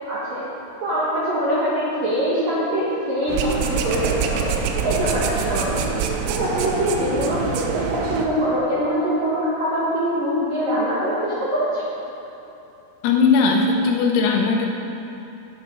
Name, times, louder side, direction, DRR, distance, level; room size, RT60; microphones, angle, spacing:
voice 1, 0.1-0.5 0.8-6.1 6.4-11.8, equal, 65° right, -8 dB, 2.3 m, -23 dB
sound 1, 3.3-8.3, right 6 dB, 80° right, 3.0 m, -25 dB
voice 2, 13.0-14.7, left 4 dB, 90° left, 1 dB, 3.8 m, -18 dB
11.0 x 9.1 x 5.5 m, 3.0 s
omnidirectional pair, 5.9 m